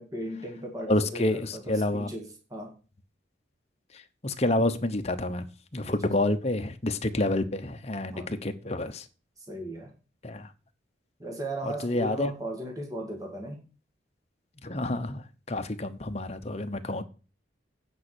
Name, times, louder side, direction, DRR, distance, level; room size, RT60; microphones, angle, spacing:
voice 1, 0.0-2.7 8.1-8.4 9.4-9.9 11.2-13.6, right 1 dB, 20° right, 1.9 m, -37 dB
voice 2, 0.9-2.1 4.2-5.4 5.7-9.0 10.2-10.5 11.6-12.3 14.6-15.2 15.5-17.0, left 1 dB, 35° left, 1.0 m, -28 dB
9.5 x 5.4 x 7.9 m
head